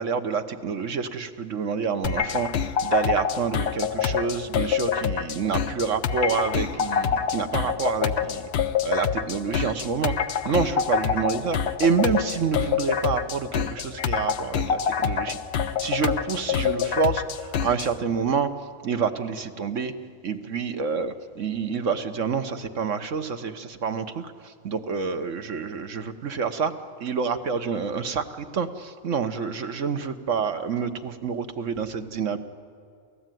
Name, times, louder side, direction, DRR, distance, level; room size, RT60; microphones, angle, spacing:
voice 1, 0.0-8.5 8.8-10.1 10.4-15.4 15.8-18.5 18.8-19.9 20.2-24.3 24.6-26.7 27.0-32.4, right 5 dB, 65° right, 8 dB, 1.5 m, -27 dB
sound 1, 2.0-17.9, left 7 dB, 55° left, 1.0 m, -26 dB
29.5 x 14.5 x 9.3 m, 2.3 s
omnidirectional pair, 1.4 m